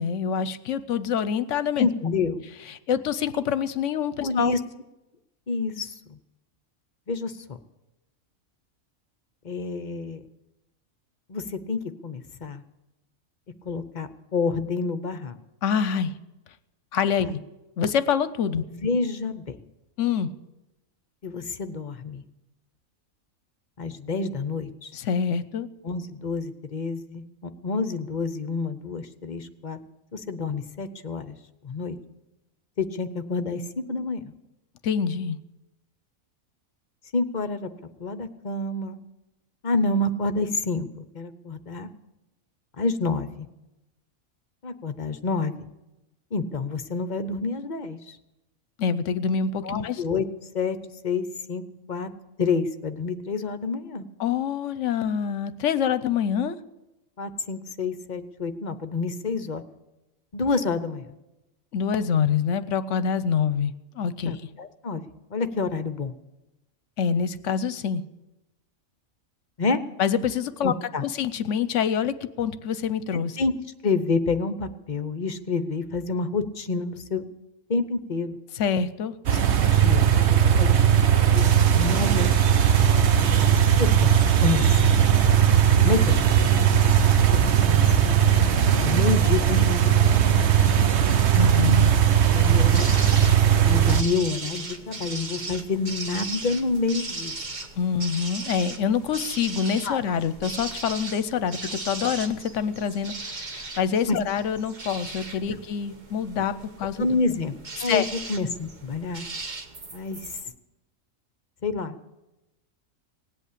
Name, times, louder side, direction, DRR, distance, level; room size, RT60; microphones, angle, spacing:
voice 1, 0.0-1.9 2.7-4.5 15.6-16.1 16.9-17.4 17.8-18.6 20.0-20.3 24.9-25.7 34.8-35.4 48.8-50.0 54.2-56.6 61.7-64.4 67.0-68.0 70.0-70.7 71.0-73.4 78.5-79.1 91.3-91.9 97.8-107.0 107.9-108.1, left 7 dB, 70° left, 14 dB, 1.0 m, -26 dB
voice 2, 1.8-2.4 4.2-4.6 5.5-6.2 7.1-7.3 9.4-10.2 11.3-12.6 13.6-15.4 17.2-17.3 18.5-19.6 21.2-22.2 23.8-24.9 25.8-27.2 27.6-29.8 30.1-31.4 31.6-32.0 32.8-34.2 37.1-37.7 38.0-39.0 39.6-40.9 41.1-41.9 42.8-43.5 44.6-45.5 46.3-48.2 49.6-50.3 50.5-50.8 51.0-51.6 51.9-52.1 52.4-54.1 57.2-59.6 60.3-61.1 64.2-65.0 65.3-66.1 69.6-69.8 70.6-71.0 73.4-73.5 73.8-77.2 77.7-78.4 79.7-80.1 80.6-82.6 83.8-85.0 85.8-86.1 87.3-88.1 88.8-90.4 92.3-92.9 93.6-97.3 99.8-100.0 104.1-104.2 107.0-107.5 107.8-109.2 109.9-110.3 111.6-111.9, left 4 dB, 40° left, 11 dB, 0.7 m, -28 dB
sound 1, 79.3-94.0, right 9 dB, 60° right, 1.0 m, -19 dB
sound 2, 92.7-110.4, right 3 dB, 35° right, 1.1 m, -37 dB
18.5 x 8.3 x 8.5 m, 0.98 s
omnidirectional pair, 1.4 m